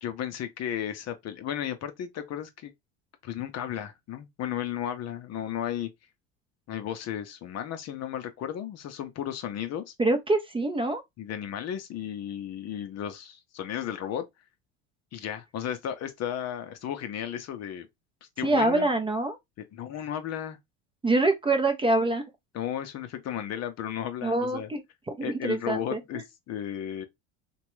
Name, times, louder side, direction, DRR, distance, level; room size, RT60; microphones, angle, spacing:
voice 1, 0.0-2.7 3.2-5.9 6.7-9.9 11.2-14.3 15.1-17.9 18.4-18.9 19.6-20.6 22.5-24.7 25.2-27.1, left 10 dB, 45° left, 0.6 m, -34 dB
voice 2, 10.0-11.0 18.4-19.4 21.0-22.2 24.2-24.8 25.2-26.0, right 2 dB, 15° right, 0.5 m, -25 dB
2.9 x 2.3 x 3.0 m
supercardioid pair, 95°, 37 cm